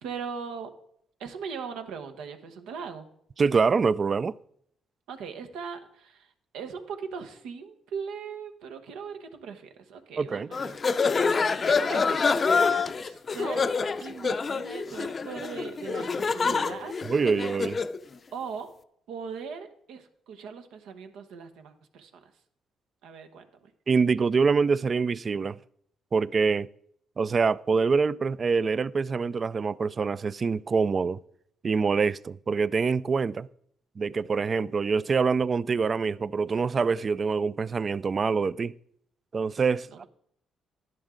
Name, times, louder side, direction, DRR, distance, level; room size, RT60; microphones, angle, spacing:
voice 1, 0.0-0.7 1.2-3.0 5.1-11.2 11.7-13.6 14.0-16.9 18.3-18.7 19.1-22.2 23.0-23.7 39.9-40.1, right 6 dB, 90° right, 1.1 m, -39 dB
voice 2, 3.4-4.3 10.2-10.5 17.1-17.8 23.9-25.6 26.1-26.7 27.2-31.2 31.6-33.5 34.0-38.7 39.3-40.0, right 5 dB, 40° right, 0.3 m, -25 dB
sound 1, 10.5-18.0, left 5 dB, 40° left, 0.5 m, -26 dB
11.5 x 10.5 x 3.8 m
cardioid pair, 90°, 0 cm